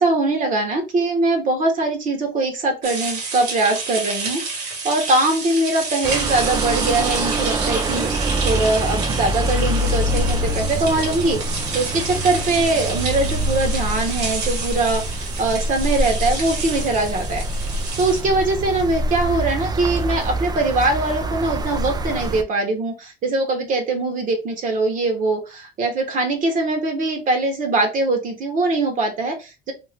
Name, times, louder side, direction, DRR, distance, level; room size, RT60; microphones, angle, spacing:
voice 1, 0.0-17.4 18.0-29.7, right 2 dB, 50° right, 4 dB, 1.1 m, -22 dB
sound 1, 2.8-18.2, right 4 dB, 90° right, 1.2 m, -29 dB
sound 2, 6.0-22.4, right 1 dB, 25° right, 0.3 m, -25 dB
2.6 x 2.5 x 3.2 m, 0.28 s
cardioid pair, 110°, 17 cm